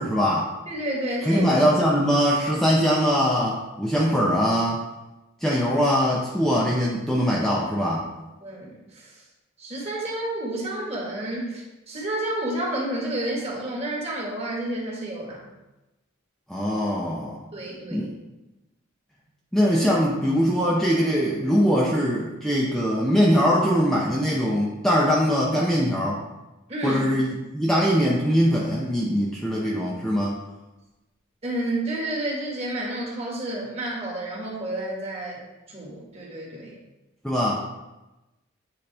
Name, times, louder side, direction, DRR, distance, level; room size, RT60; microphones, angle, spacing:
voice 1, 0.0-0.5 1.3-4.8 5.4-8.1 16.5-17.4 17.9-18.1 19.5-26.2 26.8-30.4 37.2-37.6, equal, ahead, -5 dB, 0.6 m, -22 dB
voice 2, 0.7-1.7 5.5-5.6 8.4-9.2 9.6-15.5 17.5-18.1 26.7-27.0 31.4-35.4 35.7-36.8, right 1 dB, 30° right, -4 dB, 1.7 m, -30 dB
9.5 x 3.9 x 3.4 m, 1.0 s
head